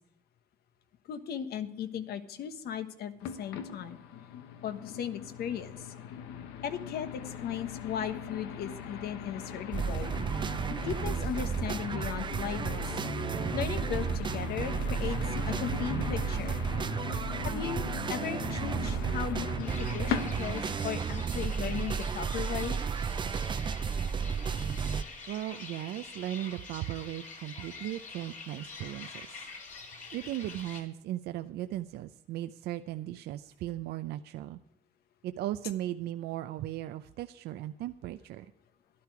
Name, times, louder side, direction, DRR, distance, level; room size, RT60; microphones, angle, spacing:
voice 1, 1.1-4.0 4.6-5.9 6.6-10.1 10.8-12.9 13.5-15.2 15.5-16.6 17.4-22.8, left 9 dB, 70° left, 10 dB, 1.2 m, -37 dB
sound 1, 3.2-20.8, left 7 dB, 90° left, 1.1 m, -40 dB
sound 2, 9.7-25.0, right 6 dB, 30° right, 0.5 m, -33 dB
sound 3, 19.6-30.8, left 4 dB, 45° left, 2.8 m, -46 dB
voice 2, 25.3-29.5 30.1-34.6 35.2-38.5, right 13 dB, 70° right, 9 dB, 0.5 m, -37 dB
12.0 x 11.5 x 4.7 m, 0.79 s
cardioid pair, 110°, 17 cm